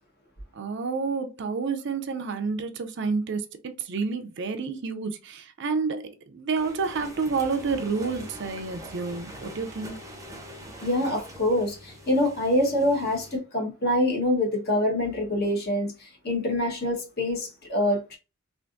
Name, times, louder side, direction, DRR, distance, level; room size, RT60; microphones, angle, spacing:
voice 1, 0.5-9.9, right 4 dB, 60° right, 0.5 m, -29 dB
sound 1, 6.6-13.4, equal, 15° right, 0.6 m, -43 dB
voice 2, 10.8-18.2, left 1 dB, 50° left, 1.2 m, -25 dB
3.4 x 2.5 x 2.5 m
head